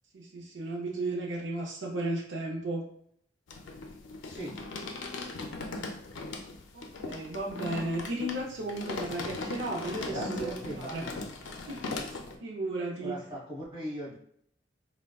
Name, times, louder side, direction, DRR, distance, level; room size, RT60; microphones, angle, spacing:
voice 1, 0.1-2.8 6.7-11.0 11.7-11.8 12.4-13.2, right 2 dB, 75° right, -1 dB, 0.5 m, -34 dB
sound 1, 3.5-12.4, left 3 dB, 85° left, 0.4 m, -39 dB
voice 2, 10.0-11.3 13.0-14.1, right 1 dB, 25° right, -8 dB, 1.4 m, -39 dB
3.4 x 2.1 x 2.3 m, 0.65 s
head